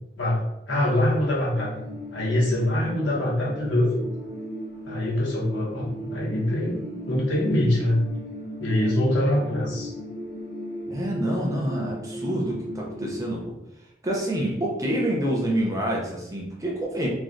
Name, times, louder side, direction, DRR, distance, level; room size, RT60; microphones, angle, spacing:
voice 1, 0.2-4.1 4.9-6.8 7.1-8.0 8.6-9.9 10.8-11.0, left 1 dB, 90° left, -5 dB, 1.0 m, -24 dB
sound 1, 1.5-13.4, equal, 45° left, 0.7 m, -37 dB
voice 2, 10.9-13.4 14.0-17.1, right 1 dB, 20° right, -2 dB, 0.5 m, -27 dB
3.1 x 2.3 x 2.5 m, 0.85 s
head